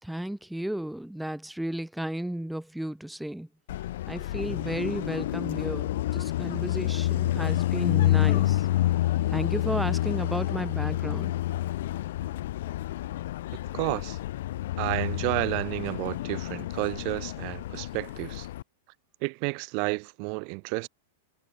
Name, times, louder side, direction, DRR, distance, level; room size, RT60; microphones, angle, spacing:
voice 1, 0.0-3.5 4.1-8.7 9.3-11.4, right 1 dB, ahead, 3.2 m, -33 dB
Car passing by, 3.7-18.6, left 14 dB, 65° left, 4.4 m, -29 dB
voice 2, 13.7-14.2 14.8-18.5 19.2-20.9, right 40 dB or more, 50° right, 4.6 m, -31 dB
hypercardioid pair, 125°, 0 cm